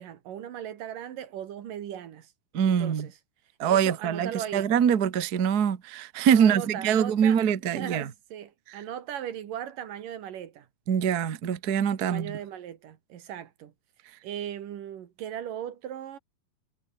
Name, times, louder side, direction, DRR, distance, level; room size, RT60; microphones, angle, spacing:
voice 1, 0.0-2.3 2.6-3.1 3.7-4.7 6.3-10.7 12.0-13.7 14.2-16.2, right 10 dB, 65° right, 3.3 m, -38 dB
voice 2, 2.5-3.1 3.6-8.1 10.9-12.4, right 8 dB, 85° right, 0.8 m, -24 dB
omnidirectional pair, 4.3 m